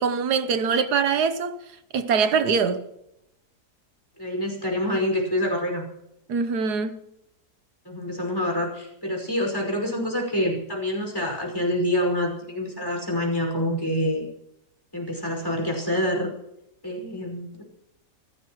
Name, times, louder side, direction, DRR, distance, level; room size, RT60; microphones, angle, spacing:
voice 1, 0.0-1.6 1.9-2.9 6.3-7.0, right 5 dB, 80° right, 1.5 m, -23 dB
voice 2, 4.2-5.8 7.9-14.3 14.9-16.3 16.8-17.6, left 1 dB, 15° left, 5.4 m, -26 dB
26.5 x 16.0 x 3.1 m
omnidirectional pair, 1.7 m